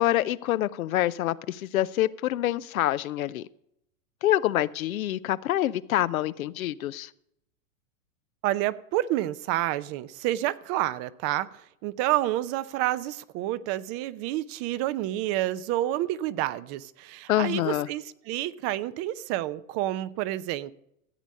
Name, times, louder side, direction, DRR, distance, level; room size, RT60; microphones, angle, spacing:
voice 1, 0.0-3.5 4.2-7.1 17.3-17.9, left 14 dB, 75° left, 16 dB, 0.7 m, -26 dB
voice 2, 8.4-20.7, right 14 dB, 35° right, 16 dB, 0.6 m, -29 dB
14.0 x 8.2 x 5.3 m, 0.76 s
hypercardioid pair, 115°, 42 cm